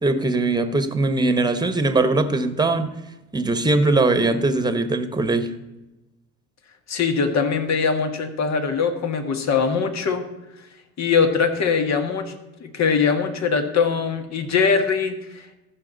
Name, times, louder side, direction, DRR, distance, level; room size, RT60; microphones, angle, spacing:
voice 1, 0.0-3.0 3.3-5.5, right 2 dB, 10° right, 10 dB, 1.2 m, -21 dB
voice 2, 6.9-10.2 11.0-12.3 12.6-15.5, left 5 dB, 50° left, 7 dB, 1.6 m, -22 dB
15.0 x 5.9 x 4.1 m, 1.0 s
supercardioid pair, 75°, 34 cm